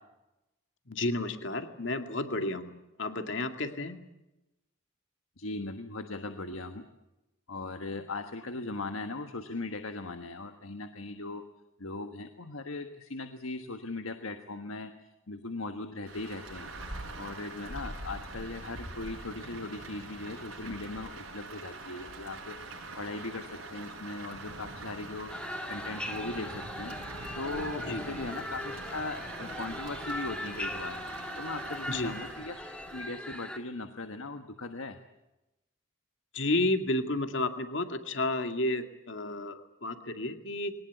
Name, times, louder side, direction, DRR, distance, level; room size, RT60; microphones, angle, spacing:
voice 1, 0.9-2.7 3.0-4.0 27.9-28.0 31.9-32.1 36.3-40.7, left 2 dB, 60° left, 7 dB, 2.2 m, -31 dB
voice 2, 5.4-6.8 7.5-11.4 11.8-14.9 15.3-16.7 17.1-27.0 27.4-31.0 31.3-32.6 32.9-35.0, left 2 dB, 90° left, 7 dB, 1.4 m, -39 dB
Rain, 16.1-33.1, right 2 dB, 85° right, 6.8 m, -43 dB
sound 1, 25.3-33.6, left 1 dB, 5° left, 2.0 m, -40 dB
22.0 x 19.0 x 9.5 m, 0.96 s
head